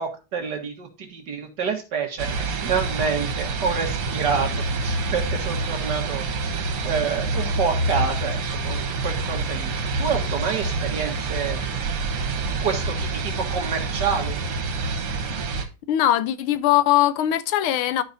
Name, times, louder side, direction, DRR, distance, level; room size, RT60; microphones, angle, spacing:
voice 1, 0.0-4.5 4.8-6.5 6.8-8.4 8.6-9.7 10.0-11.6 12.5-14.4, right 6 dB, 55° right, 1.9 m, -28 dB
sound 1, 2.2-15.7, right 3 dB, 90° right, 2.1 m, -27 dB
voice 2, 15.9-18.0, left 13 dB, 80° left, 1.5 m, -20 dB
12.0 x 4.8 x 2.6 m
omnidirectional pair, 2.3 m